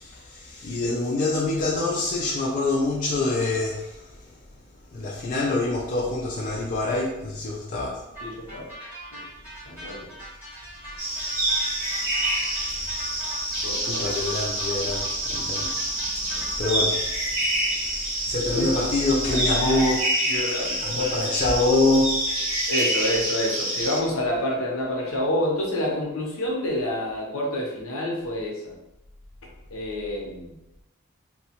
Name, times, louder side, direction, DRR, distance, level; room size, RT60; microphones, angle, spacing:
voice 1, 0.0-4.4 4.9-8.1 13.8-20.0 20.8-22.4, left 2 dB, 35° left, -5 dB, 0.4 m, -26 dB
voice 2, 8.2-8.7 9.1-9.2 9.7-10.1 13.6-14.0 16.4-16.5 18.5-18.7 19.3-19.8 20.3-21.0 22.7-28.7 29.7-30.6, left 1 dB, 70° left, -1 dB, 0.7 m, -28 dB
sound 1, 8.2-16.7, right 1 dB, 10° right, 1.2 m, -41 dB
sound 2, 11.0-24.0, right 1 dB, 65° right, 0.9 m, -27 dB
2.8 x 2.1 x 2.9 m, 0.89 s
head